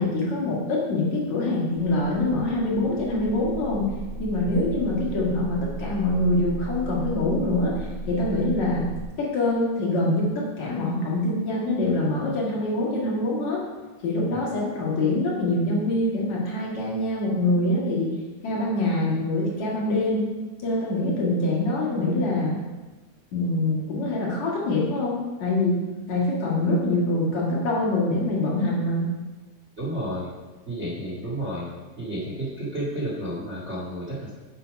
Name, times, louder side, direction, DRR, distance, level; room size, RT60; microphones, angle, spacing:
voice 1, 0.0-3.9 4.2-8.9 9.2-13.6 14.0-18.1 18.4-20.3 20.6-22.6 23.3-25.8 26.1-29.1, left 2 dB, 50° left, -5 dB, 2.8 m, -24 dB
sound 1, 1.7-9.0, right 1 dB, 70° right, 1.8 m, -36 dB
voice 2, 29.8-30.3 30.7-31.7 32.0-34.3, right 1 dB, 25° right, -6 dB, 1.4 m, -31 dB
8.8 x 7.7 x 5.2 m, 1.2 s
omnidirectional pair, 4.5 m